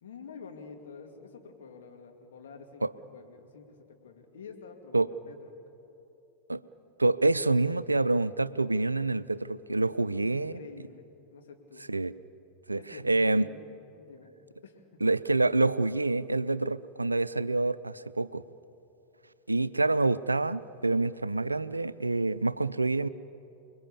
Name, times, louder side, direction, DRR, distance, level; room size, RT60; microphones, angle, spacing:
voice 1, 0.0-5.4 10.2-11.9 12.8-13.6 14.0-14.3 14.6-15.0, left 5 dB, 60° left, 3 dB, 2.5 m, -48 dB
voice 2, 7.0-10.5 11.9-12.1 12.7-12.8 13.0-13.4 15.0-18.4 19.5-23.1, right 2 dB, 80° right, 16 dB, 0.4 m, -27 dB
28.0 x 21.0 x 7.1 m, 2.9 s
figure-of-eight pair, 90°, 0 cm